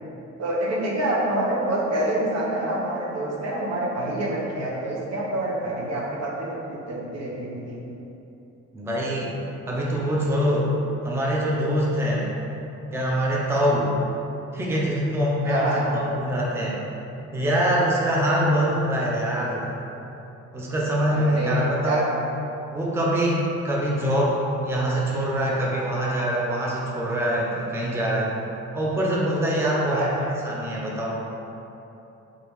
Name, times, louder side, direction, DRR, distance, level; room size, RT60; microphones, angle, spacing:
voice 1, 0.4-7.8 15.4-15.9 21.1-22.0 29.9-30.2, right 1 dB, 55° right, -4 dB, 0.8 m, -27 dB
voice 2, 8.7-9.3 9.7-10.7 11.0-12.3 12.9-13.9 14.5-16.8 17.3-19.7 20.5-22.1 22.7-28.3 28.7-31.2, equal, 10° right, -4 dB, 0.5 m, -24 dB
3.6 x 2.8 x 3.5 m, 2.9 s
cardioid pair, 90°, 30 cm